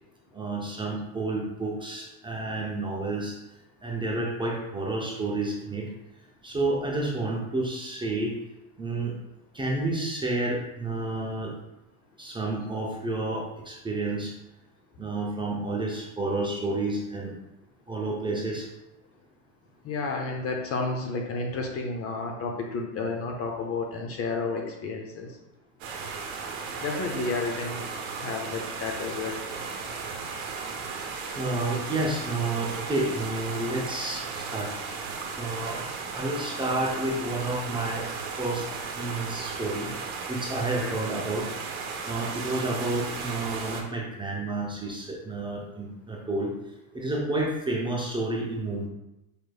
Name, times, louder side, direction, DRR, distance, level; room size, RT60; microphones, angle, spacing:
voice 1, 0.3-3.4 3.8-5.9 6.4-8.3 8.8-9.1 9.5-11.5 12.2-14.3 15.0-17.3 17.9-18.7 31.4-34.7 35.4-35.8 36.1-38.1 38.4-38.7 38.9-39.9 40.3-41.5 41.8-46.5 46.9-48.9, right 2 dB, 10° right, -3 dB, 0.6 m, -30 dB
voice 2, 19.8-25.4 26.8-27.9 28.2-29.4 40.8-40.9, left 3 dB, 35° left, 2 dB, 0.6 m, -31 dB
sound 1, 25.8-43.8, right 5 dB, 75° right, 0.8 m, -35 dB
5.1 x 3.0 x 2.2 m, 0.93 s
hypercardioid pair, 105°, 42 cm